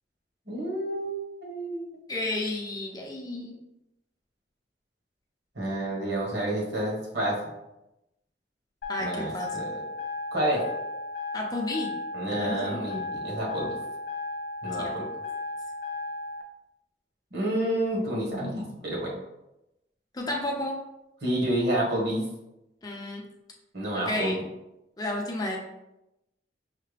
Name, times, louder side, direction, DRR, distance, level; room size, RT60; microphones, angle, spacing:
voice 1, 0.5-1.8 5.5-7.4 9.0-9.8 10.3-10.6 12.1-13.7 14.6-15.0 17.3-19.2 21.2-22.2 23.7-24.3, right 1 dB, 65° right, -4 dB, 1.4 m, -29 dB
voice 2, 2.1-3.6 8.9-9.6 11.3-11.9 12.4-12.8 14.8-14.9 20.1-20.8 22.8-23.2 24.1-24.4 25.0-25.6, left 1 dB, 20° left, 0 dB, 0.6 m, -32 dB
sound 1, 8.8-16.4, left 3 dB, 80° left, 0.6 m, -35 dB
5.7 x 2.1 x 3.3 m, 0.91 s
head